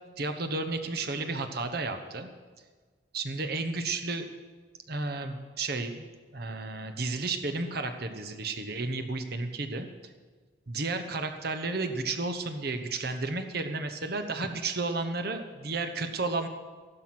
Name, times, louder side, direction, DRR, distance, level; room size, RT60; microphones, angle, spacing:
voice 1, 0.2-2.3 3.1-4.3 4.9-6.1 6.3-9.9 10.7-16.5, right 3 dB, 50° right, 7 dB, 1.0 m, -32 dB
14.0 x 12.0 x 6.0 m, 1.4 s
head